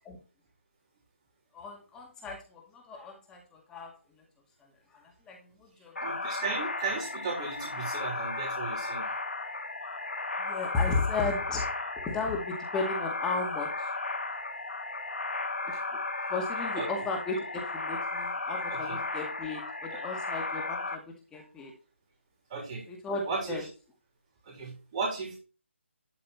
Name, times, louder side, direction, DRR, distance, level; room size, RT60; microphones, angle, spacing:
voice 1, 1.5-4.0 4.9-6.0 10.4-11.7 12.0-14.0 15.6-15.7 16.3-21.7 22.9-23.6, left 3 dB, 10° left, 0 dB, 2.2 m, -35 dB
sound 1, 5.9-21.0, left 3 dB, 85° left, 2.9 m, -35 dB
voice 2, 6.0-9.1 16.7-16.9 18.7-19.0 19.9-20.0 22.5-22.9 23.3-23.7 24.4-25.4, right 4 dB, 30° right, -2 dB, 3.3 m, -35 dB
12.0 x 4.1 x 4.2 m, 0.32 s
figure-of-eight pair, 160°, 7 cm